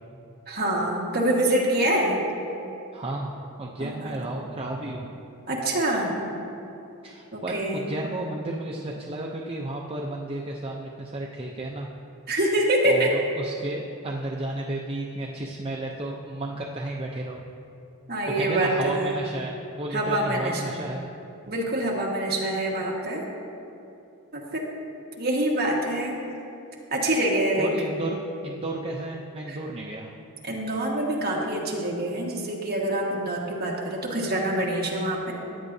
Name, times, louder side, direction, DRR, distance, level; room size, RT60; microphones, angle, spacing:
voice 1, 0.5-2.2 3.8-4.1 5.5-6.2 7.3-7.8 12.3-13.1 18.1-19.2 19.9-20.8 21.5-23.2 24.3-24.6 25.2-26.2 26.9-27.7 29.5-29.6 30.4-35.3, right 1 dB, 45° right, -3 dB, 1.5 m, -25 dB
voice 2, 2.9-5.1 7.0-11.9 12.8-17.4 18.3-21.1 27.6-28.2 28.4-30.1, right 1 dB, 25° right, -1 dB, 0.5 m, -32 dB
15.0 x 9.7 x 2.7 m, 2.8 s
head